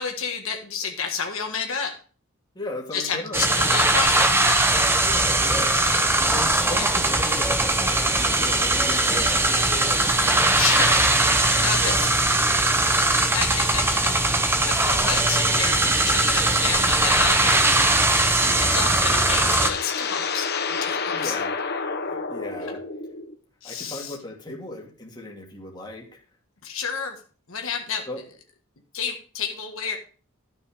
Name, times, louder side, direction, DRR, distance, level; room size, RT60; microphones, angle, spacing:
voice 1, 0.0-2.0 2.9-4.7 6.3-6.4 10.6-11.1 11.6-12.1 12.5-12.7 13.3-17.7 18.7-21.4 23.6-24.2 26.6-27.2 27.5-28.1 28.9-30.0, left 6 dB, 70° left, 3 dB, 1.7 m, -30 dB
voice 2, 2.5-3.7 5.0-5.9 6.3-10.6 11.8-12.1 17.6-17.9 18.4-19.6 21.1-21.5 22.0-22.8 23.6-26.1 28.1-28.2, left 1 dB, 20° left, -1 dB, 2.4 m, -36 dB
sound 1, 3.3-19.7, right 2 dB, 10° right, 1.0 m, -20 dB
sound 2, 18.2-23.4, left 5 dB, 50° left, 1.1 m, -30 dB
12.5 x 6.2 x 5.0 m, 0.40 s
head